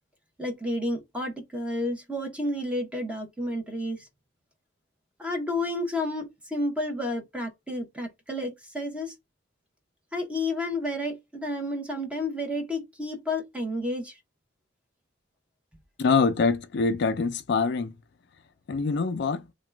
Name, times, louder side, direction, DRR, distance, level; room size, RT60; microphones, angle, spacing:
voice 1, 0.4-4.1 5.2-9.1 10.1-14.2, left 1 dB, 5° right, 1.0 m, -31 dB
voice 2, 16.0-18.0 18.7-19.5, left 4 dB, 65° left, 0.4 m, -24 dB
2.9 x 2.3 x 3.3 m
head